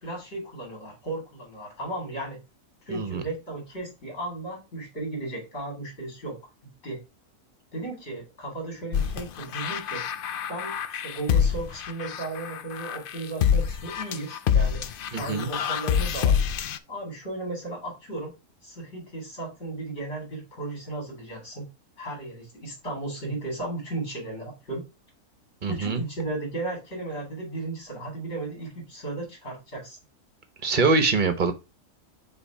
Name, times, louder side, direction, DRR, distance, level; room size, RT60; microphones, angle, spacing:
voice 1, 0.0-2.4 2.9-6.4 6.8-7.0 7.7-10.0 10.5-14.8 15.2-16.4 16.9-18.3 18.6-21.6 22.0-24.8 25.7-30.0, right 2 dB, 45° left, -1 dB, 3.9 m, -35 dB
voice 2, 2.9-3.2 15.1-15.5 25.6-26.0 30.6-31.5, right 4 dB, 35° right, 8 dB, 1.0 m, -24 dB
sound 1, 8.9-16.8, left 8 dB, 75° left, 0.5 m, -26 dB
7.1 x 3.1 x 4.6 m, 0.26 s
omnidirectional pair, 1.6 m